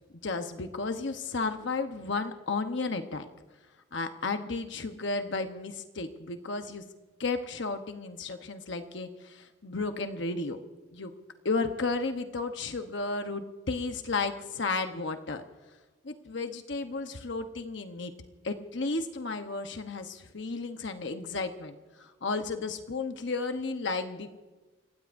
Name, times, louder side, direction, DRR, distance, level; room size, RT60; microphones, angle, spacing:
voice 1, 0.2-3.3 3.9-6.8 7.2-10.6 10.9-11.1 11.4-15.4 16.0-18.1 18.4-24.3, left 3 dB, 65° left, 6 dB, 1.0 m, -33 dB
29.5 x 16.5 x 2.6 m, 1.2 s
head